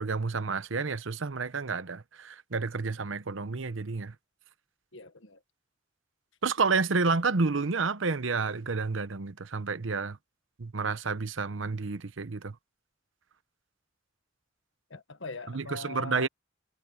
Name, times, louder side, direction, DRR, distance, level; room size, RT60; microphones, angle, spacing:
voice 1, 0.0-4.1 6.4-10.2 10.6-12.5 15.5-16.3, right 4 dB, 75° right, 0.9 m, -30 dB
voice 2, 4.9-5.4 14.9-16.3, left 3 dB, 70° left, 1.6 m, -42 dB
head